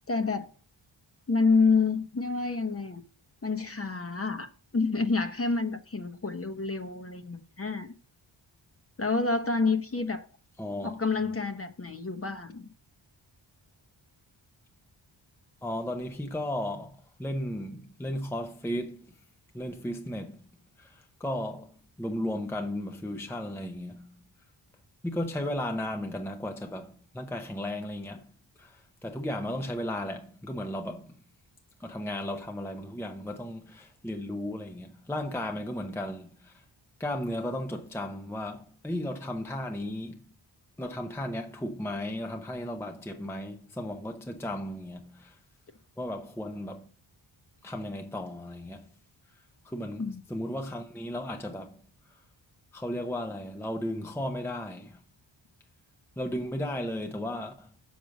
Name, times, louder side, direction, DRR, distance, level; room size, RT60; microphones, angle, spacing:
voice 1, 0.1-0.5 1.3-3.0 3.4-7.9 9.0-10.3 10.8-12.7 50.0-50.2, left 4 dB, 30° left, 0.9 m, -28 dB
voice 2, 10.6-10.9 15.6-19.1 19.5-20.4 20.8-24.1 25.0-28.3 28.6-31.1 31.8-36.5 37.0-40.2 40.8-45.3 46.0-46.9 47.6-48.9 49.6-51.8 52.7-55.0 56.2-57.7, left 1 dB, 5° left, 0.6 m, -35 dB
6.4 x 6.1 x 5.1 m
wide cardioid pair, 105°, 48 cm